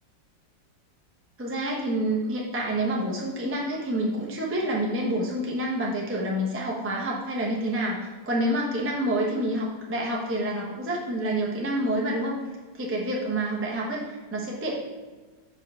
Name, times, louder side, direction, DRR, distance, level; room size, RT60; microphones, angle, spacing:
voice 1, 1.4-8.0 8.3-12.4 12.7-14.7, right 1 dB, 10° right, -3 dB, 0.8 m, -28 dB
5.6 x 4.9 x 5.6 m, 1.3 s
omnidirectional pair, 2.0 m